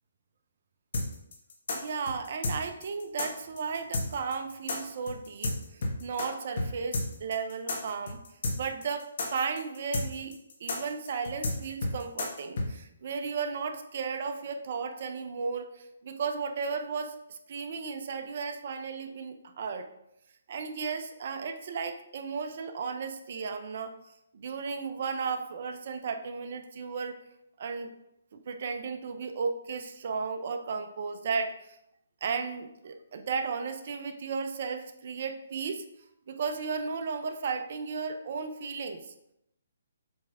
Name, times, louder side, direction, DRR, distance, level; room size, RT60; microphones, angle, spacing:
sound 1, 0.9-6.3 6.6-6.7 6.9-12.7, left 2 dB, 60° left, 1.6 m, -31 dB
voice 1, 1.7-8.2 8.6-19.9 20.5-23.9 24.3-27.2 27.6-27.9 28.3-31.8 32.2-35.8 36.3-39.0, right 5 dB, 50° right, 7 dB, 0.7 m, -34 dB
7.6 x 3.4 x 3.7 m, 0.81 s
hypercardioid pair, 155°, 0 cm